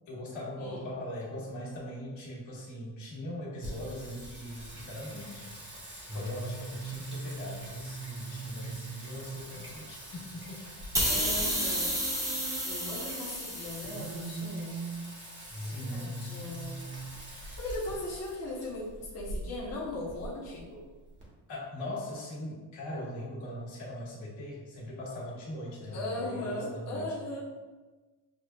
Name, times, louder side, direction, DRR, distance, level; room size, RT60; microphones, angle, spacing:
voice 1, 0.1-5.6 6.1-10.6 15.4-16.3 21.5-27.1, left 1 dB, 75° left, -5 dB, 1.5 m, -40 dB
Singing, 3.6-21.2, right 2 dB, 25° right, 0.9 m, -41 dB
Air release, 10.9-14.3, equal, 10° right, 0.3 m, -31 dB
voice 2, 11.0-12.0 12.6-14.8 15.9-16.8 17.2-20.8 25.9-27.4, left 1 dB, 35° left, -7 dB, 0.8 m, -38 dB
6.5 x 2.3 x 2.2 m, 1.3 s
cardioid pair, 165°, 47 cm